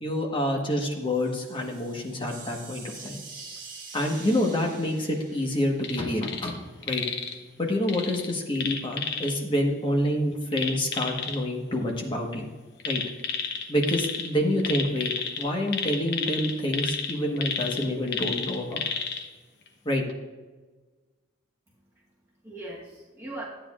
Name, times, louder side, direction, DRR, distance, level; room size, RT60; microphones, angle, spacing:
voice 1, 0.0-3.2 3.9-7.0 7.6-12.4 12.8-13.0 13.7-15.1 15.4-18.8 19.8-20.0, left 1 dB, 25° left, 0 dB, 1.2 m, -27 dB
sound 1, 0.9-6.8, right 4 dB, 45° right, 1.9 m, -46 dB
sound 2, 5.8-6.5 6.8-7.3 7.9-9.3 10.5-11.4 12.8-14.3 14.6-19.2 19.7-19.8, left 6 dB, 60° left, 0.9 m, -31 dB
voice 2, 21.7-23.4, right 2 dB, 15° right, -5 dB, 1.2 m, -41 dB
12.5 x 8.9 x 2.4 m, 1.3 s
head